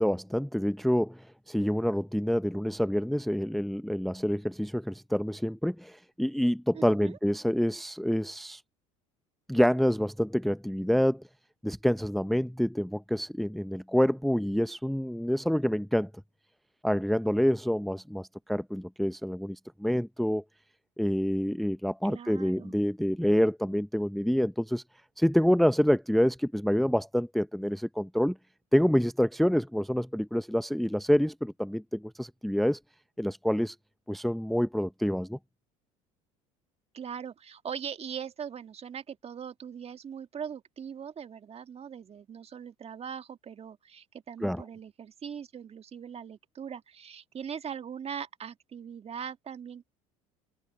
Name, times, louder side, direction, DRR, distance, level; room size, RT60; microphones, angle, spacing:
voice 1, 0.0-8.6 9.5-11.2 11.6-16.1 16.8-20.4 21.0-24.8 25.2-28.4 28.7-32.8 33.2-33.8 34.1-35.4 44.4-44.6, equal, ahead, 0.7 m, -27 dB
voice 2, 6.7-7.2 22.0-22.7 36.9-49.8, right 7 dB, 35° right, 1.7 m, -41 dB
open air
hypercardioid pair, 70°, 18 cm